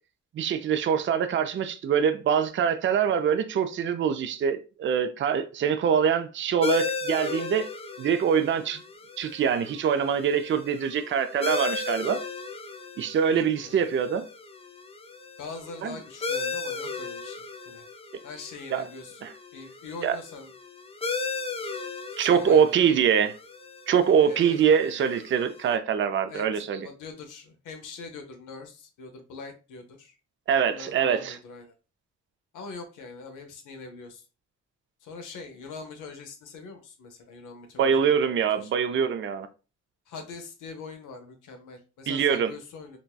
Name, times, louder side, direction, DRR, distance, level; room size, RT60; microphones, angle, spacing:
voice 1, 0.3-7.7 8.0-8.8 9.2-12.2 13.0-14.2 15.8-15.9 18.7-18.8 19.2-19.3 20.0-20.2 22.2-23.3 23.9-26.9 30.5-31.4 37.8-39.5 42.1-42.5, right 7 dB, 40° right, 0.4 m, -24 dB
sound 1, 6.6-25.8, left 4 dB, 20° left, 0.4 m, -36 dB
voice 2, 13.3-13.9 15.4-17.8 18.2-19.2 19.5-20.5 22.1-23.0 24.2-24.6 26.3-30.2 30.6-31.7 32.5-34.3 35.0-38.1 38.5-38.7 40.1-43.0, left 4 dB, 85° left, 0.8 m, -42 dB
3.9 x 2.2 x 2.3 m
cardioid pair, 75°, 30 cm